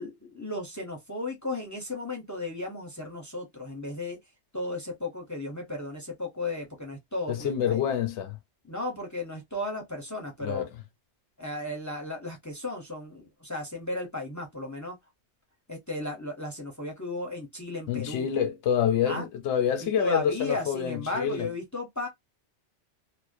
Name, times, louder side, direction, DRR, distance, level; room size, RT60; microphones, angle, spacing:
voice 1, 0.0-4.2 4.5-7.8 8.7-10.7 11.4-15.0 15.7-18.3 19.1-19.3 19.8-22.1, left 2 dB, 20° left, 0.5 m, -35 dB
voice 2, 7.3-8.4 10.4-10.7 17.9-21.5, left 8 dB, 80° left, 0.9 m, -27 dB
2.4 x 2.1 x 2.4 m
omnidirectional pair, 1.2 m